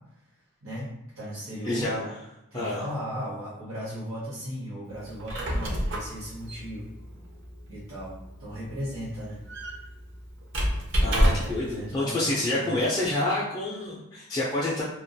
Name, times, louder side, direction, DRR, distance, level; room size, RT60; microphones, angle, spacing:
voice 1, 0.6-1.9 2.5-6.9 7.7-8.1 8.4-9.4 10.9-12.8, equal, 75° right, -8 dB, 0.8 m, -37 dB
voice 2, 1.6-2.2 2.5-2.8 11.0-14.8, left 1 dB, 20° left, -7 dB, 0.3 m, -28 dB
Squeak, 5.0-11.7, equal, 55° right, 0.5 m, -29 dB
2.2 x 2.2 x 2.6 m, 0.90 s
head